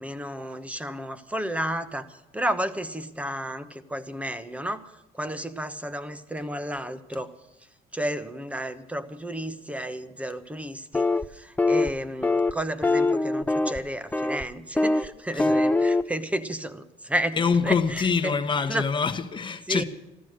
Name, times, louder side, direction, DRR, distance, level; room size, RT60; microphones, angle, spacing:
voice 1, 0.0-7.3 7.9-17.4 17.6-18.4 18.7-18.8 19.7-19.8, right 1 dB, 10° right, 1.0 m, -32 dB
sound 1, 10.9-11.3 11.6-11.9 12.2-12.5 12.8-13.8 14.1-14.4 14.8-15.1 15.4-16.0, left 2 dB, 10° left, 0.5 m, -22 dB
voice 2, 17.4-19.8, left 5 dB, 30° left, 1.2 m, -25 dB
14.0 x 14.0 x 6.4 m
cardioid pair, 110°, 17 cm